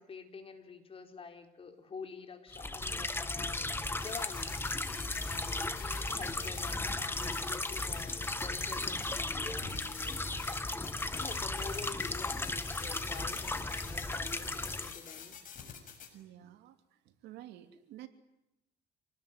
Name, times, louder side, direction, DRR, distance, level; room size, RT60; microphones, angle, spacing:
voice 1, 0.0-3.7 4.0-4.6 5.2-15.4, left 5 dB, 35° left, 5 dB, 4.4 m, -48 dB
sound 1, 2.5-14.9, left 2 dB, 15° left, 1.7 m, -36 dB
sound 2, 4.0-16.1, left 7 dB, 50° left, 6.7 m, -48 dB
voice 2, 16.1-18.1, right 13 dB, 85° right, 7 dB, 2.9 m, -51 dB
27.5 x 19.5 x 9.6 m, 0.88 s
cardioid pair, 110°, 17 cm